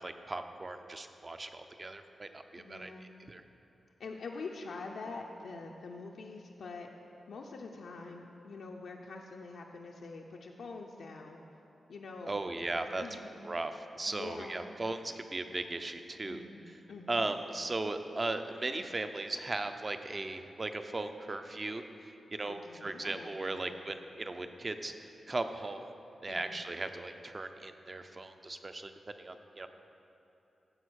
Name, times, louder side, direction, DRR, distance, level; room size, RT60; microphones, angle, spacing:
voice 1, 0.0-3.4 12.3-13.0 13.4-16.4 17.1-21.8 22.3-24.9 25.3-25.9 26.2-29.7, right 2 dB, 25° right, 8 dB, 0.5 m, -37 dB
voice 2, 2.6-3.1 4.0-6.9 7.3-11.4 11.9-13.6 14.1-14.7 16.2-17.3 22.4-23.7 26.3-26.5, left 3 dB, 75° left, 0 dB, 0.6 m, -45 dB
14.5 x 5.0 x 6.2 m, 2.9 s
wide cardioid pair, 180°, 0 cm